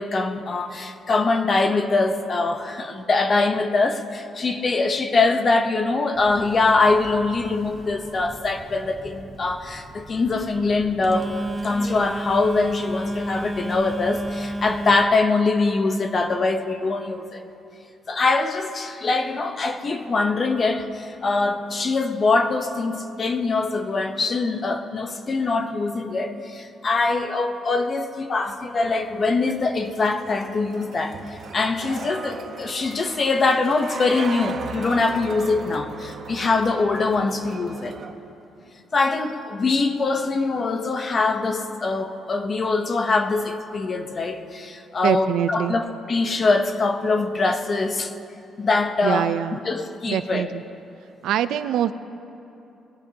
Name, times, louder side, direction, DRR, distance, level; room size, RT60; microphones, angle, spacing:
voice 1, 0.0-17.4 18.1-31.2 31.5-37.9 38.9-48.1 48.6-50.5, left 3 dB, 30° left, 6 dB, 0.7 m, -23 dB
Telephone, 6.2-15.1, right 1 dB, 15° right, 0.7 m, -34 dB
sound 1, 28.8-38.1, right 5 dB, 45° right, 0.9 m, -37 dB
voice 2, 45.0-45.8 49.0-49.6 50.1-50.6 51.2-51.9, right 10 dB, 75° right, 13 dB, 0.4 m, -24 dB
21.5 x 16.5 x 2.8 m, 2.9 s
cardioid pair, 180°, 0 cm